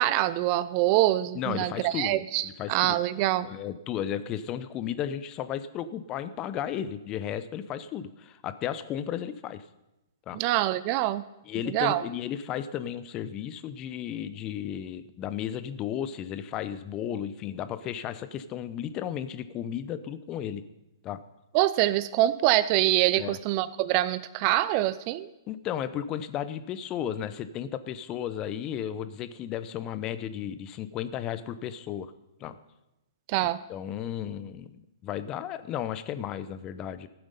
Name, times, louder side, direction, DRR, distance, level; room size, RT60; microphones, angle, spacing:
voice 1, 0.0-3.5 10.3-11.2 11.7-12.0 21.5-25.3 33.3-33.6, right 15 dB, 35° right, 16 dB, 0.5 m, -25 dB
voice 2, 1.3-3.0 3.4-9.6 10.3-10.4 11.5-20.6 21.0-21.2 23.2-23.4 25.5-32.1 32.4-32.6 33.4-37.1, left 10 dB, 30° left, 13 dB, 0.7 m, -34 dB
15.0 x 7.9 x 5.3 m, 0.94 s
hypercardioid pair, 125°, 2 cm